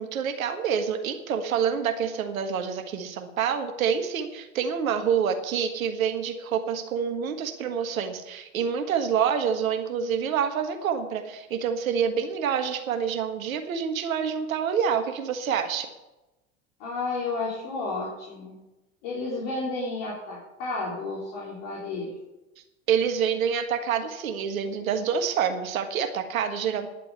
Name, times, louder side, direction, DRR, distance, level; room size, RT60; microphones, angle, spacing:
voice 1, 0.0-15.9 22.9-26.9, right 7 dB, 75° right, 7 dB, 1.5 m, -27 dB
voice 2, 16.8-18.5 19.0-22.2, left 3 dB, 55° left, -6 dB, 3.8 m, -32 dB
10.5 x 7.6 x 8.3 m, 1.0 s
figure-of-eight pair, 75°, 42 cm